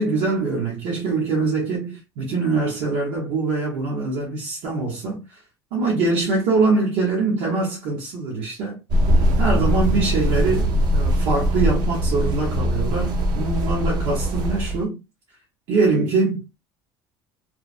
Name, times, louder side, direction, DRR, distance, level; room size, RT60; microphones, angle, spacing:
voice 1, 0.0-5.4 5.7-8.8 9.4-15.0 15.7-16.4, right 3 dB, 80° right, 0.9 m, -23 dB
sound 1, 8.9-14.8, equal, 55° right, 0.5 m, -21 dB
3.1 x 2.0 x 2.4 m
cardioid pair, 155°, 8 cm